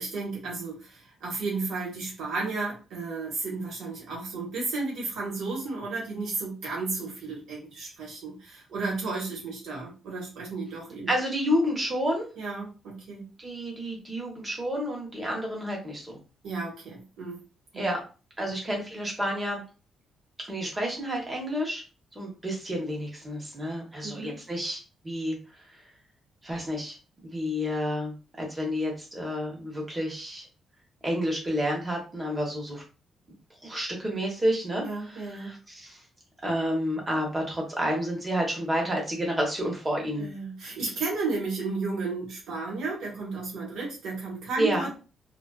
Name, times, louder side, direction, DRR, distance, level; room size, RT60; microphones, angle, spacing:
voice 1, 0.0-11.1 12.4-13.2 16.4-17.4 17.7-17.9 18.5-18.6 24.0-24.4 34.8-35.5 40.2-44.9, right 3 dB, 80° right, -3 dB, 1.2 m, -33 dB
voice 2, 11.1-12.3 13.4-16.2 17.8-18.0 18.4-19.6 20.5-21.8 22.1-24.8 25.0-25.4 26.4-27.0 27.2-30.4 31.0-32.8 33.6-36.0 36.4-40.3 44.6-44.9, equal, 15° right, -1 dB, 0.8 m, -30 dB
2.7 x 2.3 x 2.3 m, 0.33 s
cardioid pair, 175°, 0 cm